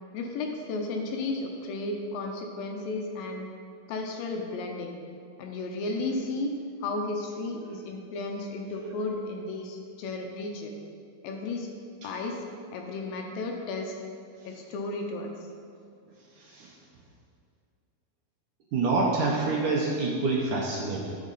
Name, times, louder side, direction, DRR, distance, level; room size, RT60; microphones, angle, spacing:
voice 1, 0.1-3.5 3.9-4.9 5.4-6.5 6.8-10.7 11.2-11.7 12.0-12.4 12.7-14.0 14.5-15.3, left 2 dB, 75° left, 2 dB, 2.4 m, -33 dB
voice 2, 18.7-21.2, right 3 dB, 70° right, -2 dB, 2.0 m, -27 dB
13.5 x 6.2 x 4.1 m, 2.4 s
omnidirectional pair, 4.4 m